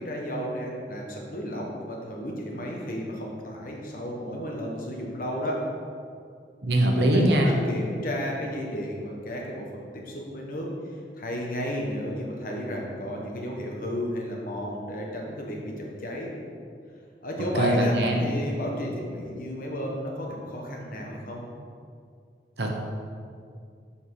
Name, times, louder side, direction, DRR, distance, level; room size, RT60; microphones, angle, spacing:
voice 1, 0.0-5.6 7.1-10.7 11.2-16.3 17.2-21.5, equal, 50° left, -1 dB, 1.3 m, -33 dB
voice 2, 6.6-7.6 17.5-18.2 22.6-22.7, right 1 dB, 70° right, 1 dB, 1.1 m, -22 dB
7.0 x 5.8 x 4.9 m, 2.3 s
head